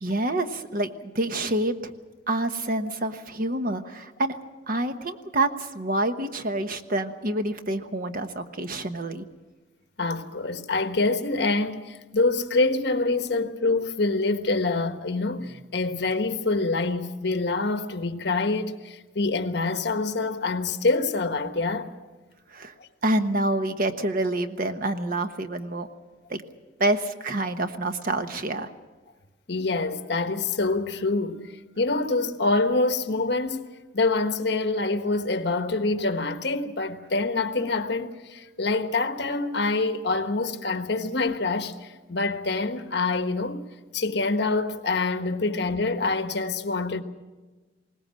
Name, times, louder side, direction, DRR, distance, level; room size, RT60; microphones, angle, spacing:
voice 1, 0.0-1.9 2.3-4.4 4.7-9.3 22.5-22.7 23.0-25.9 26.3-26.4 26.8-28.7, right 1 dB, 55° right, 1.2 m, -27 dB
voice 2, 10.0-21.9 22.8-22.9 29.5-33.7 33.9-43.6 43.9-47.0, left 3 dB, 65° left, 1.3 m, -26 dB
21.0 x 18.5 x 7.6 m
head